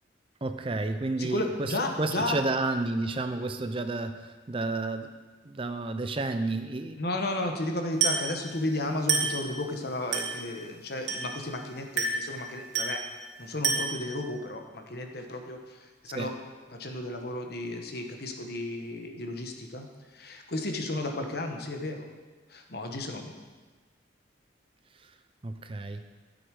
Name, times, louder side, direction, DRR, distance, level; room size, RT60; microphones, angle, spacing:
voice 1, 0.4-5.1 5.4-7.0 16.1-16.3 25.0-25.1 25.4-26.0, right 2 dB, 30° right, 8 dB, 0.5 m, -31 dB
voice 2, 1.2-2.4 7.0-13.0 13.4-16.4 16.7-19.9 20.1-22.0 22.5-23.3, left 2 dB, 55° left, 4 dB, 1.2 m, -33 dB
Glass, 8.0-8.4 9.1-9.4 10.1-10.4 11.1-11.4 12.0-12.3 12.7-13.1 13.6-14.1, right 5 dB, 65° right, 2.5 m, -28 dB
14.0 x 8.0 x 4.8 m, 1.3 s
head